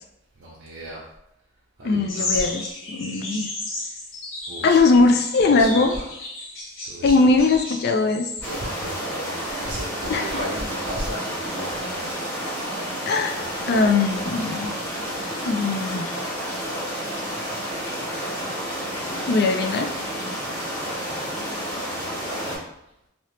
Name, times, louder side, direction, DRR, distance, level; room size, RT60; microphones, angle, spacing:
voice 1, 0.4-1.0 1.8-2.6 4.5-4.9 5.4-6.1 6.8-7.5 8.4-12.1 13.3-14.5 21.8-22.6, right 1 dB, 65° right, -6 dB, 0.6 m, -36 dB
voice 2, 1.8-3.5 4.6-6.0 7.0-8.3 10.1-10.2 13.1-13.3 13.7-14.7 15.4-16.3 19.3-19.9, left 3 dB, 50° left, 5 dB, 0.3 m, -20 dB
sound 1, 2.1-8.5, left 2 dB, 75° left, 0.9 m, -33 dB
sound 2, 8.4-22.6, equal, 10° left, 0.9 m, -30 dB
2.8 x 2.8 x 3.2 m, 0.82 s
head